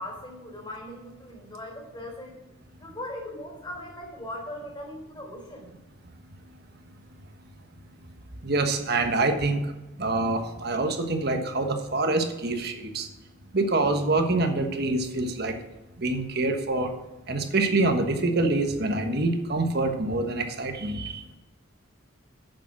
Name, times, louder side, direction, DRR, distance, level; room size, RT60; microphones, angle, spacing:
voice 1, 0.0-2.4 2.8-5.7, left 1 dB, 25° left, 0 dB, 3.9 m, -39 dB
voice 2, 8.4-9.7 10.0-13.1 13.5-15.5 16.0-16.9 17.3-21.2, right 2 dB, 50° right, 5 dB, 1.3 m, -25 dB
8.9 x 7.0 x 6.1 m, 1.0 s
head